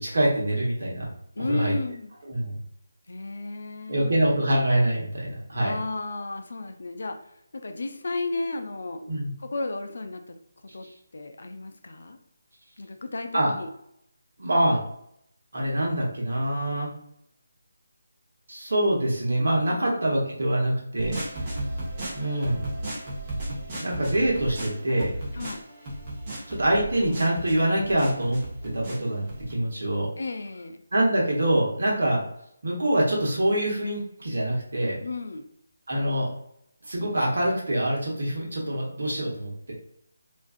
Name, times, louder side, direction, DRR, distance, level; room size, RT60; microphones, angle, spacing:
voice 1, 0.0-1.1 1.5-1.7 2.3-2.6 3.9-5.7 9.1-9.3 13.3-13.5 14.4-14.8 15.5-16.9 18.5-21.1 22.1-22.6 23.8-25.1 26.5-30.1 30.9-32.2 32.6-35.0 35.9-36.3 36.8-39.7, right 1 dB, 65° right, -3 dB, 1.0 m, -25 dB
voice 2, 1.3-2.1 3.1-4.3 5.6-9.0 9.4-10.4 10.7-10.9 11.1-12.2 12.8-13.7 19.7-20.0 25.3-25.6 30.2-30.8 35.0-35.5, left 3 dB, 65° left, 6 dB, 0.4 m, -33 dB
sound 1, 21.0-29.5, right 1 dB, 25° right, 0.8 m, -35 dB
2.5 x 2.3 x 2.4 m, 0.72 s
figure-of-eight pair, 155°, 0 cm